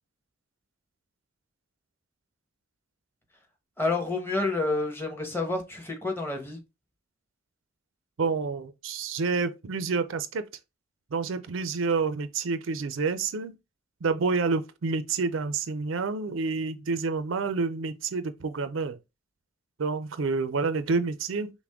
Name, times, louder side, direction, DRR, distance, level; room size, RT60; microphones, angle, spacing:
voice 1, 3.8-6.6, left 3 dB, 10° left, 1.0 m, -29 dB
voice 2, 8.2-10.5 11.1-13.6 14.0-19.0 19.8-21.5, right 4 dB, 75° right, 0.5 m, -28 dB
5.9 x 2.1 x 3.5 m
head